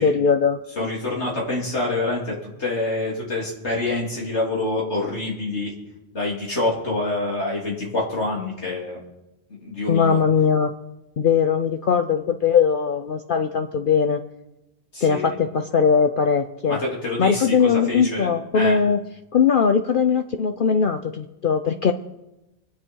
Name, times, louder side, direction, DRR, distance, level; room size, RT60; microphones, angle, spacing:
voice 1, 0.0-0.6 9.9-10.7 11.2-14.2 15.0-16.8 17.2-19.0 19.3-21.9, left 6 dB, 55° left, 7 dB, 0.8 m, -20 dB
voice 2, 0.8-5.7 6.1-9.0 9.6-10.2 14.9-15.4 16.7-18.3 18.5-18.8, left 2 dB, 80° left, -4 dB, 3.4 m, -26 dB
24.5 x 9.5 x 4.6 m, 0.94 s
omnidirectional pair, 1.1 m